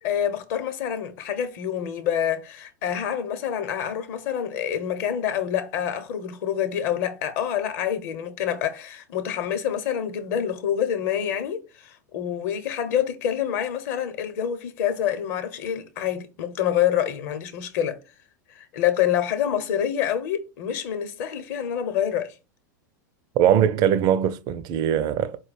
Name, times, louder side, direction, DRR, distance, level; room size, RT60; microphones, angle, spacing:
voice 1, 0.0-18.0 18.5-22.3, left 9 dB, 55° left, 0.8 m, -27 dB
voice 2, 23.4-25.4, right 10 dB, 40° right, 0.4 m, -21 dB
4.4 x 2.1 x 4.1 m
figure-of-eight pair, 85°, 10 cm